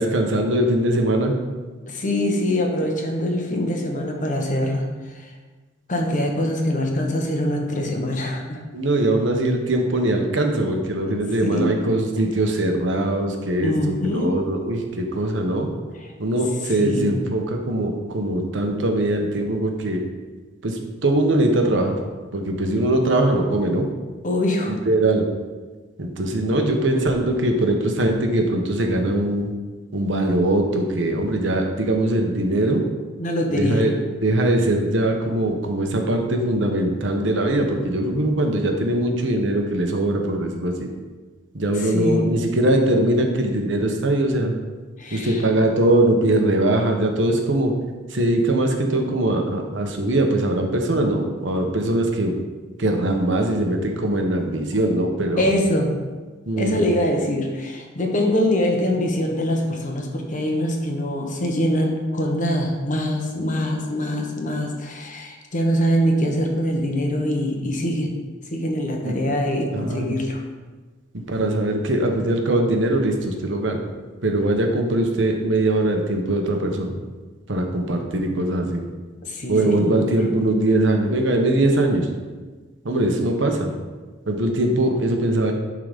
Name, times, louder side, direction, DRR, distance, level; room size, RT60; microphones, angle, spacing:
voice 1, 0.0-1.3 8.7-13.7 14.0-15.7 16.2-20.0 20.6-21.9 22.3-23.9 24.7-25.2 26.0-29.5 29.9-32.9 33.5-33.9 34.2-40.9 41.5-44.5 45.1-47.7 48.1-52.4 52.8-55.5 56.5-56.8 69.0-69.1 69.7-70.2 71.3-73.9 74.2-77.0 77.5-78.8 79.5-82.1 82.8-83.7 84.3-85.5, right 1 dB, 65° right, 3 dB, 1.1 m, -21 dB
voice 2, 1.9-5.3 5.9-8.6 11.1-11.2 11.4-11.7 13.6-14.3 16.0-16.1 16.8-17.1 24.2-24.8 33.2-33.9 41.7-42.2 45.0-45.4 55.4-56.0 56.6-68.1 68.4-70.4 79.2-80.1, left 1 dB, 40° left, 1 dB, 1.2 m, -23 dB
11.0 x 3.9 x 5.2 m, 1.3 s
head